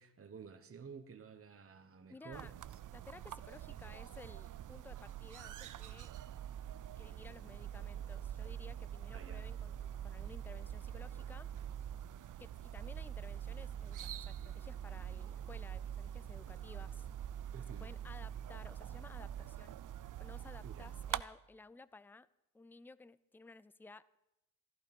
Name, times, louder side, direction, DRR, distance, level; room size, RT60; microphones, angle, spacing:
voice 1, 0.0-2.8 3.8-4.2 9.1-9.4 17.5-17.9 20.6-20.9, right 6 dB, 30° right, 6 dB, 1.2 m, -52 dB
voice 2, 2.1-2.5 2.9-6.1 7.0-11.5 12.4-17.1 17.8-19.8 20.2-22.3 22.5-24.2, left 3 dB, 5° left, 18 dB, 0.4 m, -56 dB
sound 1, 2.3-21.2, right 10 dB, 45° right, 0.6 m, -45 dB
14.0 x 12.0 x 5.3 m, 0.90 s
supercardioid pair, 70°, 43 cm